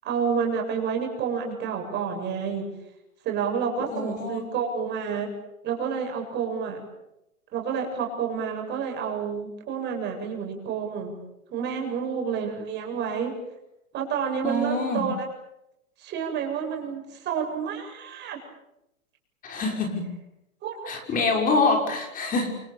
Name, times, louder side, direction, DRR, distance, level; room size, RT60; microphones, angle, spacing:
voice 1, 0.0-2.7 3.2-5.3 5.6-6.8 7.5-11.1 11.5-13.3 13.9-15.2 16.0-18.4 20.6-20.9, right 6 dB, 25° right, 2 dB, 7.8 m, -29 dB
voice 2, 3.9-4.5 14.4-15.1 19.4-20.1 20.8-22.5, left 3 dB, 20° left, 3 dB, 6.2 m, -25 dB
29.0 x 28.0 x 7.2 m, 0.87 s
hypercardioid pair, 145°, 41 cm